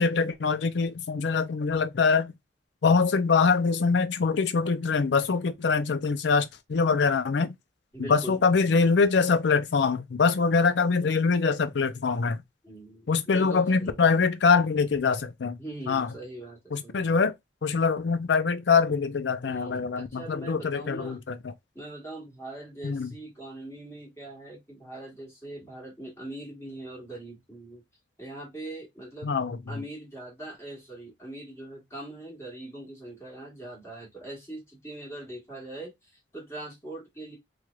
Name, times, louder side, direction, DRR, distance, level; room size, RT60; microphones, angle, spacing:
voice 1, 0.0-2.3 2.8-7.5 8.0-12.4 13.1-15.6 15.9-16.1 16.7-17.3 17.6-21.4 22.8-23.1 29.2-29.6, left 5 dB, 70° left, 0.5 m, -24 dB
voice 2, 7.9-8.4 12.6-14.0 15.6-17.1 19.4-21.2 21.7-27.8 28.2-29.4 29.7-37.4, right 1 dB, 15° left, 1.4 m, -41 dB
3.1 x 3.1 x 2.3 m
head